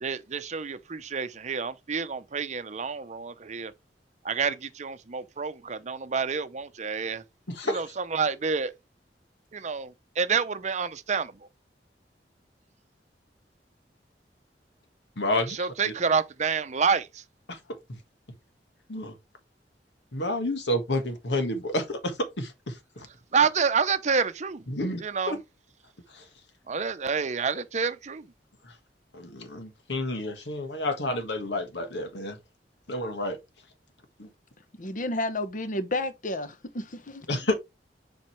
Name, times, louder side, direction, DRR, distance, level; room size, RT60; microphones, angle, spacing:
voice 1, 0.0-3.7 4.2-7.2 7.7-8.7 9.5-11.3 15.6-17.2 23.3-24.6 25.0-25.4 26.7-28.3, right 5 dB, 40° right, 0.6 m, -28 dB
voice 2, 7.5-7.8 15.2-15.9 17.5-17.6 17.9-18.0 18.9-19.1 20.1-23.1 24.7-25.0 25.3-25.4 26.1-26.3 28.6-28.8 29.1-32.4 32.9-33.4 34.2-34.3 37.3-37.5, left 1 dB, 85° left, 1.6 m, -30 dB
voice 3, 34.8-37.3, left 2 dB, 50° left, 1.0 m, -31 dB
7.4 x 5.2 x 3.2 m
head